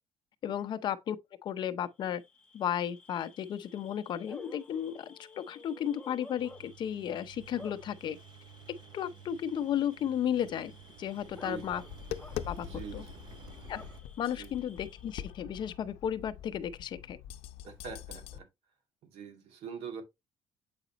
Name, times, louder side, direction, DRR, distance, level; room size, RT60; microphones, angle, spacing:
voice 1, 0.4-1.2 1.4-2.2 2.5-8.2 8.9-10.7 11.0-11.8 12.5-12.7 12.9-13.1 13.7-13.8 14.2-17.2, left 9 dB, 50° left, 0.7 m, -34 dB
Bark / Cricket, 2.0-15.3, left 3 dB, 10° left, 1.0 m, -54 dB
Engine, 6.4-14.0, right 7 dB, 45° right, 0.6 m, -53 dB
voice 2, 11.2-11.8 12.6-13.2 14.4-14.5 17.6-18.5 19.0-20.0, right 5 dB, 85° right, 2.2 m, -44 dB
Tap, 11.7-18.4, left 11 dB, 90° left, 0.7 m, -44 dB
7.9 x 5.0 x 2.9 m
cardioid pair, 165°, 10 cm